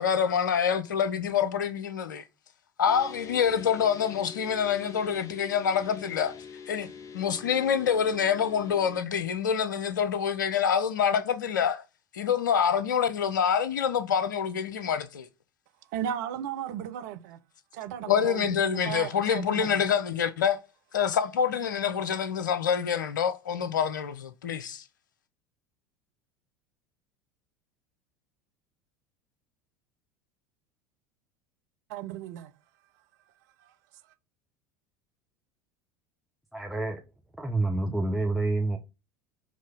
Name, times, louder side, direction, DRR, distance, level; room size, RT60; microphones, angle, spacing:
voice 1, 0.0-2.2 2.8-6.4 6.7-6.9 7.1-11.8 12.1-15.3 18.1-20.6 20.9-24.8, left 7 dB, 75° left, 0.6 m, -26 dB
sound 1, 2.9-9.0, left 6 dB, 30° left, 0.9 m, -44 dB
voice 2, 15.9-17.4 17.7-19.8 31.9-32.5, right 10 dB, 60° right, 0.7 m, -35 dB
voice 3, 36.5-37.0 37.4-38.8, right 2 dB, ahead, 0.9 m, -28 dB
6.4 x 3.1 x 5.2 m
figure-of-eight pair, 70°, 11 cm